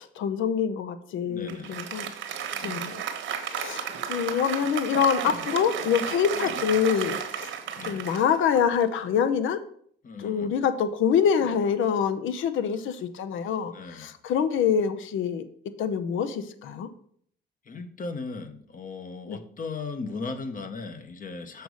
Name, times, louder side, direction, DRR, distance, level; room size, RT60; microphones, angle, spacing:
voice 1, 0.0-3.0 3.4-7.5 7.8-9.6 10.2-15.4 15.8-16.9 19.3-19.4, left 7 dB, 80° left, 12 dB, 0.7 m, -26 dB
voice 2, 1.2-1.9 2.5-2.9 5.3-5.5 6.4-6.5 7.8-8.1 10.0-10.5 13.7-14.1 17.7-21.6, left 4 dB, 45° left, 8 dB, 1.0 m, -37 dB
Applause, 1.5-9.1, right 8 dB, 75° right, 1.1 m, -33 dB
6.8 x 4.0 x 6.3 m, 0.62 s
cardioid pair, 90°, 20 cm